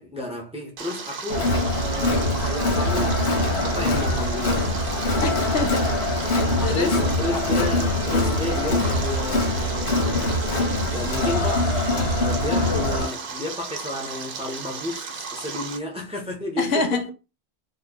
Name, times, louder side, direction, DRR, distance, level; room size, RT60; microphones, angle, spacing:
voice 1, 0.0-5.1 6.7-10.3 10.9-16.8, left 2 dB, 5° right, 0.6 m, -32 dB
Stream, 0.8-15.8, right 5 dB, 60° right, 0.8 m, -35 dB
Crowd, 1.3-13.0, left 1 dB, 90° left, 1.3 m, -23 dB
voice 2, 5.2-6.0 6.6-6.9 16.6-17.1, left 3 dB, 70° left, 0.9 m, -25 dB
3.0 x 2.3 x 3.6 m
omnidirectional pair, 1.1 m